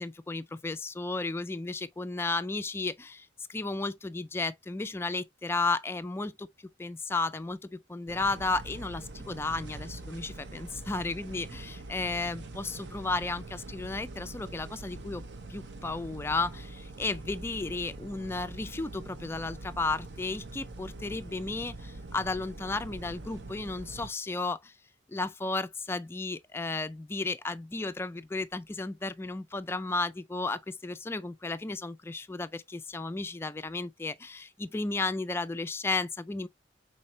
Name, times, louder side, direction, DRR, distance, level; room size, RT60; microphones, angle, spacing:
voice 1, 0.0-6.5 6.8-15.2 15.5-24.7 25.1-36.5, left 3 dB, 15° left, 0.3 m, -33 dB
sound 1, 8.1-24.1, right 2 dB, 65° right, 0.6 m, -44 dB
5.4 x 3.4 x 2.6 m
head